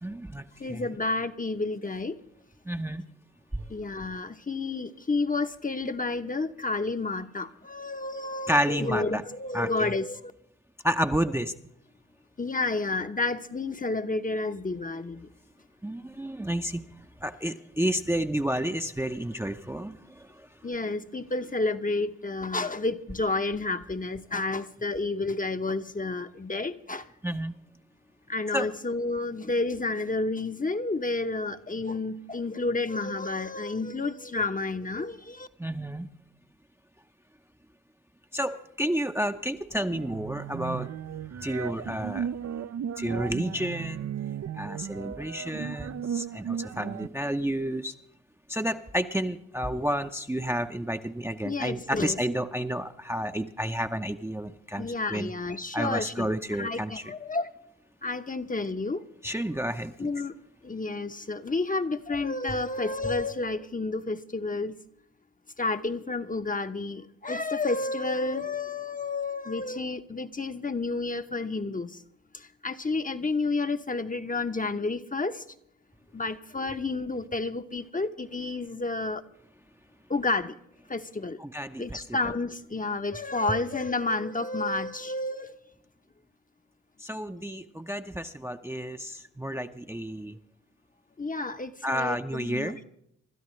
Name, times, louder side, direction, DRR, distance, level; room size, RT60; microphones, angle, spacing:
voice 1, 0.0-0.8 2.7-3.0 3.5-3.6 8.5-9.2 9.5-9.9 10.8-11.5 15.8-16.8 17.2-20.5 27.2-27.5 28.5-28.7 35.6-36.1 38.3-40.9 41.4-42.3 43.0-44.1 44.6-47.9 48.5-55.3 55.7-57.0 59.2-60.1 81.4-82.0 87.0-90.4 91.8-92.8, equal, 5° right, 0.7 m, -30 dB
voice 2, 0.6-2.2 3.7-10.3 12.4-15.3 20.6-27.1 28.3-35.5 51.4-52.2 54.8-57.5 58.0-59.0 60.0-60.4 60.6-64.8 65.6-72.0 72.3-75.4 76.1-79.2 80.1-80.6 80.9-81.4 81.8-85.6 91.2-92.7, left 3 dB, 20° left, 0.9 m, -30 dB
sound 1, 39.9-47.1, right 8 dB, 40° right, 0.5 m, -35 dB
25.5 x 12.5 x 3.2 m
hypercardioid pair, 45°, 39 cm